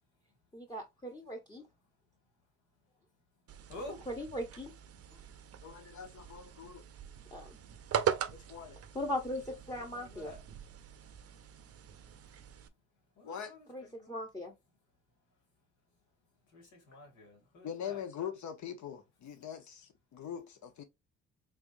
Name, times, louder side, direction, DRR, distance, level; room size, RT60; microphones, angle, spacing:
voice 1, 0.5-1.6 4.1-4.7 7.3-7.6 8.9-10.3 13.7-14.5, left 1 dB, 15° left, 0.8 m, -39 dB
sound 1, 3.5-12.7, right 8 dB, 55° right, 0.6 m, -40 dB
voice 2, 3.7-4.1 9.7-10.4 13.2-14.2 16.5-18.0, left 2 dB, 85° left, 2.1 m, -49 dB
voice 3, 5.6-6.8 8.3-8.8 13.2-13.5 17.6-20.8, left 8 dB, 70° left, 1.0 m, -42 dB
3.6 x 3.4 x 2.6 m
cardioid pair, 90°, 30 cm